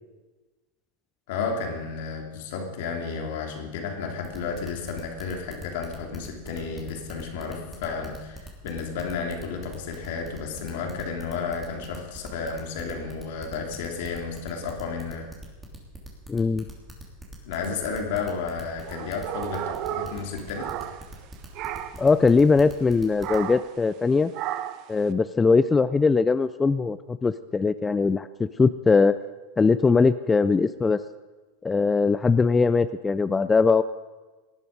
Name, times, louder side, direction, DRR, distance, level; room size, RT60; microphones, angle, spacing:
voice 1, 1.3-15.3 17.4-20.7, left 5 dB, 70° left, 2 dB, 2.9 m, -32 dB
sound 1, 4.2-23.5, right 2 dB, 10° right, 3.1 m, -42 dB
voice 2, 16.3-16.6 22.0-24.3 24.9-29.2 29.6-31.0 31.6-33.8, left 4 dB, 15° left, 13 dB, 0.4 m, -21 dB
sound 2, 18.8-21.3 21.5-22.1 23.2-23.8 24.3-24.9, right 12 dB, 50° right, 0.8 m, -33 dB
18.0 x 11.0 x 5.2 m, 1.2 s
supercardioid pair, 120°, 0 cm